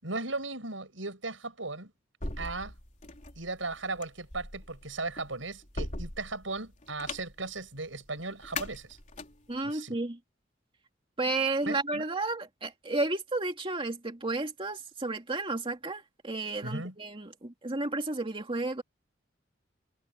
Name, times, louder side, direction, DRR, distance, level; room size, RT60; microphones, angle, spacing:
voice 1, 0.0-1.9 2.4-2.7 3.4-9.0 9.6-9.9 11.7-12.0 16.6-16.9, right 3 dB, 90° right, 6.8 m, -37 dB
sound 1, 2.2-9.6, left 2 dB, 40° left, 3.7 m, -41 dB
voice 2, 9.5-10.2 11.2-18.8, right 2 dB, 30° right, 2.4 m, -32 dB
head